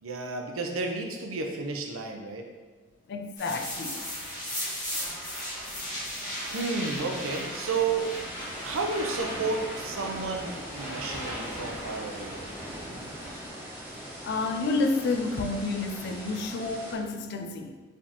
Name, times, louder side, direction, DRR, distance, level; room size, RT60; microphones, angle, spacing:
voice 1, 0.0-2.5 6.5-8.1 8.6-12.5, right 4 dB, 80° right, 0.6 m, -32 dB
voice 2, 3.1-4.1 14.2-17.8, left 3 dB, 50° left, 0.4 m, -30 dB
sound 1, 3.4-13.5, equal, 20° left, 1.5 m, -37 dB
sound 2, 4.4-16.9, equal, 10° right, 1.2 m, -43 dB
4.7 x 3.5 x 2.9 m
head